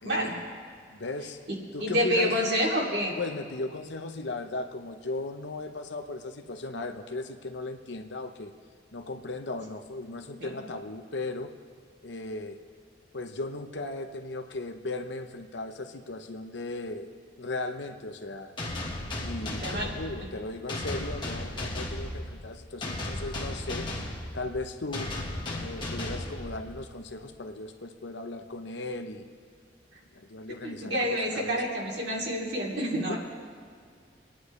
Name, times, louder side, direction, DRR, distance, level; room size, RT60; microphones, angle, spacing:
voice 1, 0.0-0.5 0.9-1.4 1.7-2.4 3.2-8.5 8.9-11.5 12.0-12.6 13.1-18.5 19.2-23.9 24.3-25.1 25.6-29.3 30.1-31.6 32.9-33.2, left 2 dB, 70° left, 6 dB, 0.9 m, -37 dB
voice 2, 1.8-3.2 10.4-10.6 19.6-19.9 30.6-33.2, equal, 65° right, -4 dB, 2.9 m, -28 dB
sound 1, 18.6-27.0, left 1 dB, 25° left, 1.5 m, -35 dB
26.5 x 10.0 x 3.3 m, 2.1 s
head